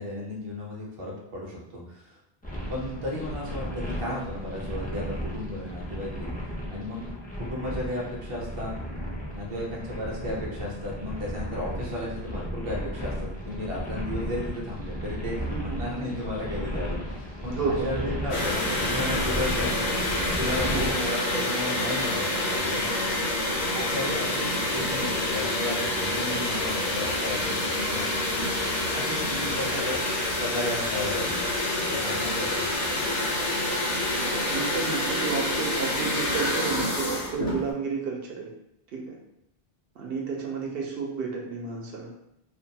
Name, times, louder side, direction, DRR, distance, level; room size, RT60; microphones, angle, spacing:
voice 1, 0.0-2.1 2.7-6.3 6.7-7.1 7.4-8.7 9.3-13.1 13.4-19.9 20.4-23.0 23.7-28.4 28.9-30.0 30.4-31.4 31.9-32.7, left 1 dB, 35° right, -3 dB, 0.6 m, -34 dB
sound 1, 2.4-20.9, equal, 15° left, 0.3 m, -34 dB
voice 2, 17.5-17.9 20.7-20.8 34.5-38.5 38.9-39.2 40.0-42.1, right 4 dB, 75° right, -2 dB, 0.8 m, -31 dB
sound 2, 18.3-37.7, left 1 dB, 70° left, 0.9 m, -27 dB
2.5 x 2.2 x 2.7 m, 0.82 s
omnidirectional pair, 1.0 m